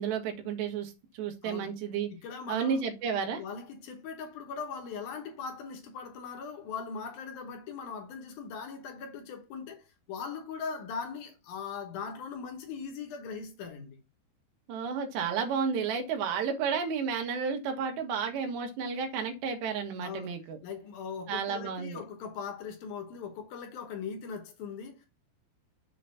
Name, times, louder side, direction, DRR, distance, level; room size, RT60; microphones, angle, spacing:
voice 1, 0.0-2.1 2.5-3.4 14.7-20.6 21.3-22.0, right 6 dB, 75° right, 3.7 m, -32 dB
voice 2, 1.4-1.7 2.1-2.9 3.4-14.0 20.0-20.3 20.6-25.1, left 5 dB, 65° left, 2.7 m, -40 dB
7.6 x 4.0 x 5.7 m
omnidirectional pair, 5.0 m